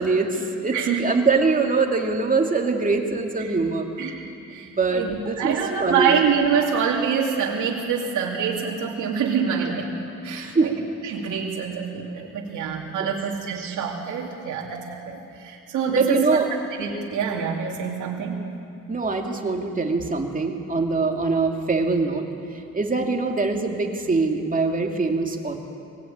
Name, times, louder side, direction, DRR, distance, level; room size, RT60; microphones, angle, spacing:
voice 1, 0.0-4.2 4.6-6.1 10.4-10.7 13.0-13.1 15.9-16.5 18.9-25.6, right 4 dB, 25° right, 2 dB, 2.6 m, -23 dB
voice 2, 0.7-1.0 3.4-3.5 4.0-10.0 10.2-10.7 11.0-16.2 16.8-18.4, right 6 dB, 80° right, -1 dB, 2.6 m, -26 dB
22.0 x 18.0 x 8.8 m, 2.6 s
cardioid pair, 90°, 30 cm